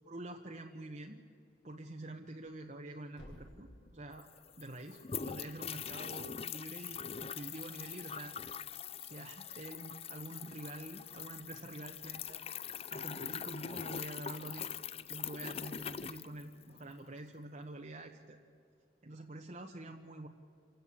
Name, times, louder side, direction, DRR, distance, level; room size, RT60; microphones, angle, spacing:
voice 1, 0.1-1.2 1.6-4.3 4.6-8.3 9.0-12.4 12.9-14.7 15.0-18.4 19.0-20.3, right 2 dB, 45° right, 3 dB, 1.1 m, -47 dB
Thump thud, 2.3-6.4, equal, 85° left, 6.4 m, -59 dB
sound 1, 3.9-4.0 4.1-16.9, left 7 dB, 35° left, 0.5 m, -43 dB
28.0 x 16.0 x 8.5 m, 2.3 s
head